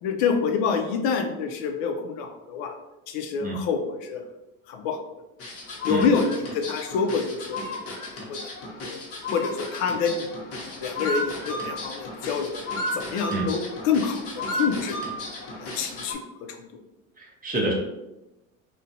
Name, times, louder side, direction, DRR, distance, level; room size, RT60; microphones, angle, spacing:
voice 1, 0.0-2.7 3.1-4.2 4.7-5.0 5.8-7.8 8.3-8.4 8.8-9.0 9.3-10.3 10.8-12.6 12.9-15.0 15.6-16.2, left 5 dB, 70° left, 5 dB, 0.5 m, -26 dB
sound 1, 5.4-16.2, left 1 dB, 35° left, 0.8 m, -34 dB
voice 2, 17.2-17.7, right 2 dB, 20° right, -2 dB, 0.7 m, -27 dB
2.4 x 2.2 x 2.6 m, 0.97 s
supercardioid pair, 90°, 39 cm